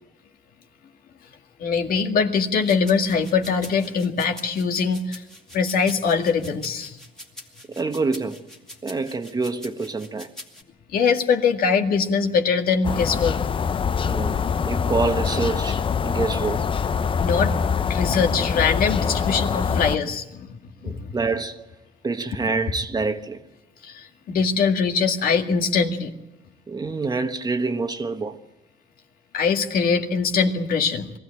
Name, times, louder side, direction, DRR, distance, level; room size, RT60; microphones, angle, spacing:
voice 1, 1.6-5.2 5.5-7.0 10.9-13.4 17.2-17.5 17.9-21.2 23.8-26.1 29.3-31.1, left 5 dB, 60° left, 2.0 m, -22 dB
sound 1, 2.7-10.6, left 1 dB, 5° left, 2.3 m, -43 dB
voice 2, 7.7-8.4 8.8-10.3 14.0-16.7 20.8-21.7 22.0-23.4 26.7-28.4, right 3 dB, 25° right, 1.3 m, -27 dB
sound 2, 12.8-20.0, left 6 dB, 30° left, 0.7 m, -24 dB
22.5 x 15.0 x 8.8 m
cardioid pair, 110°, 17 cm